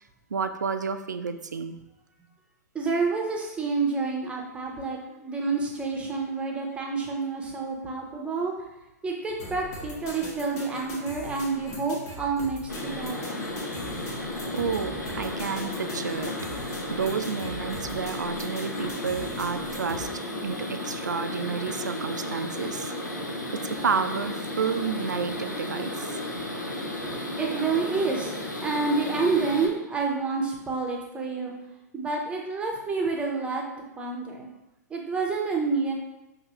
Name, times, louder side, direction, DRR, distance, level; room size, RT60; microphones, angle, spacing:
voice 1, 0.3-1.8 14.5-16.4 16.9-20.1 20.4-22.9 23.5-26.1, right 5 dB, 80° right, 9 dB, 0.4 m, -30 dB
voice 2, 2.7-8.6 9.0-13.4 27.0-31.5 31.9-33.6 34.0-34.5 34.9-35.9, right 4 dB, 10° right, 0 dB, 0.8 m, -29 dB
sound 1, 9.4-20.1, left 1 dB, 35° left, 1.1 m, -40 dB
sound 2, 12.7-29.7, left 1 dB, 90° left, 0.9 m, -34 dB
5.8 x 2.7 x 2.9 m, 0.93 s
figure-of-eight pair, 105°, 10 cm